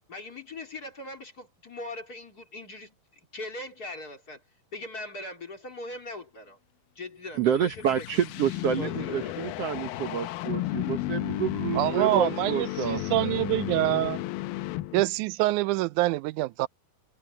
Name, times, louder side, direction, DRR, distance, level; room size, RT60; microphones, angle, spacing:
voice 1, 0.0-3.0 3.3-4.4 4.7-6.6 7.0-8.0 8.8-9.5, left 2 dB, 25° left, 3.8 m, -40 dB
sound 1, 7.4-15.2, left 16 dB, 85° left, 2.5 m, -33 dB
voice 2, 7.4-13.3, right 8 dB, 70° right, 1.5 m, -29 dB
voice 3, 11.8-14.2 14.9-16.7, right 17 dB, 85° right, 1.7 m, -26 dB
omnidirectional pair, 4.1 m